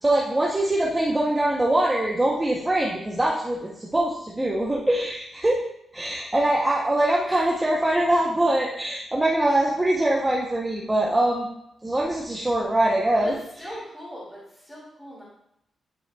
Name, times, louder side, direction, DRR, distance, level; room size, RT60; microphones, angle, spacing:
voice 1, 0.0-5.6 5.9-11.5 11.8-13.4, right 1 dB, 10° right, -3 dB, 0.7 m, -23 dB
voice 2, 13.6-15.2, equal, 5° left, -6 dB, 2.2 m, -40 dB
11.0 x 5.3 x 2.3 m, 0.79 s
wide cardioid pair, 150°, 0 cm